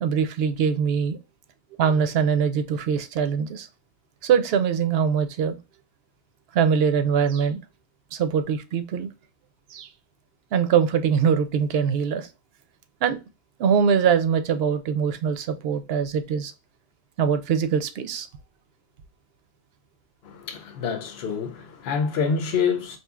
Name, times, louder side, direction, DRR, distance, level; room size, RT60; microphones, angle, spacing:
voice 1, 0.0-1.2 1.8-3.7 4.2-5.6 6.5-7.6 8.1-9.1 9.7-9.9 10.5-12.3 13.0-13.2 13.6-16.5 17.2-18.3, right 7 dB, 75° right, 0.8 m, -22 dB
voice 2, 20.2-23.0, left 6 dB, 80° left, 0.9 m, -27 dB
4.3 x 2.7 x 2.3 m
omnidirectional pair, 1.0 m